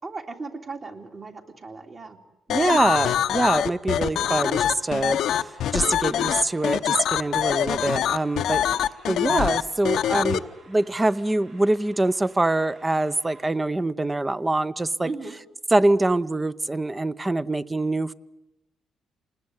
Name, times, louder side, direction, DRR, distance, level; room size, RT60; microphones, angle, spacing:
voice 1, 0.0-2.2 2.5-2.8 15.0-15.3, right 3 dB, 40° right, 3 dB, 3.2 m, -37 dB
sound 1, 2.5-10.4, left 10 dB, 75° left, 0.9 m, -24 dB
voice 2, 2.5-5.2 5.7-8.7 9.1-15.1 15.7-18.1, right 2 dB, 20° right, 16 dB, 0.8 m, -24 dB
sound 2, 4.8-13.5, right 3 dB, 70° right, 6.7 m, -53 dB
27.5 x 20.0 x 9.7 m, 0.97 s
cardioid pair, 90°, 0 cm